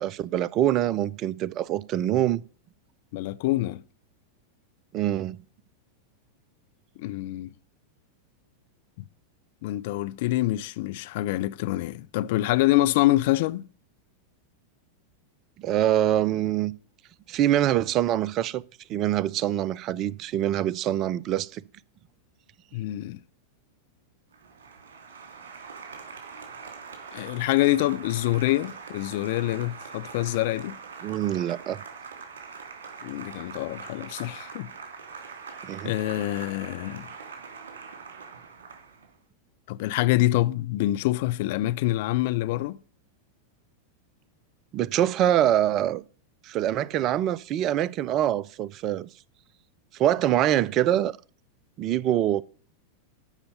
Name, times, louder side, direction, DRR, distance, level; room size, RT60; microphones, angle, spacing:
voice 1, 0.0-2.4 4.9-5.4 15.6-16.7 17.3-18.6 18.9-21.6 31.0-31.8 35.7-35.9 44.7-46.0 46.4-49.1 49.9-51.1 51.8-52.4, right 12 dB, 35° right, 0.5 m, -24 dB
voice 2, 3.1-3.8 7.0-7.5 9.0-9.1 9.6-13.7 22.7-23.2 27.1-30.8 33.0-34.7 35.8-37.1 39.7-42.8, left 16 dB, 50° left, 0.4 m, -26 dB
Applause, 24.3-39.1, right 5 dB, 60° right, 2.7 m, -43 dB
13.0 x 5.6 x 6.7 m
figure-of-eight pair, 90°, 0 cm